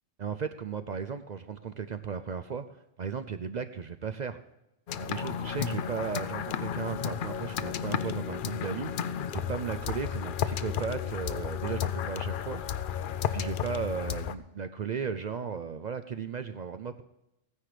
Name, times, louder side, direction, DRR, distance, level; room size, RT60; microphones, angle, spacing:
voice 1, 0.2-4.4 5.0-12.8 13.3-17.0, right 6 dB, 55° right, 10 dB, 0.5 m, -36 dB
sound 1, 4.9-14.3, left 8 dB, 55° left, 0.6 m, -33 dB
15.0 x 9.8 x 4.9 m, 0.89 s
omnidirectional pair, 1.3 m